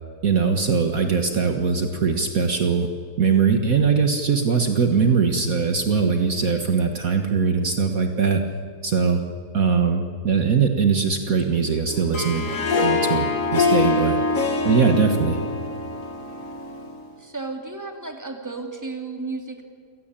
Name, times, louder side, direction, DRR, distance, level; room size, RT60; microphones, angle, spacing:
voice 1, 0.2-2.9 3.2-8.4 8.8-9.2 9.5-12.5 12.8-14.2 14.7-15.4, right 5 dB, 55° right, 5 dB, 1.8 m, -21 dB
Harp, 11.9-17.1, left 4 dB, 50° left, 2.2 m, -24 dB
voice 2, 17.2-19.6, right 3 dB, 10° right, 3 dB, 2.5 m, -33 dB
28.0 x 17.5 x 8.9 m, 2.1 s
omnidirectional pair, 1.8 m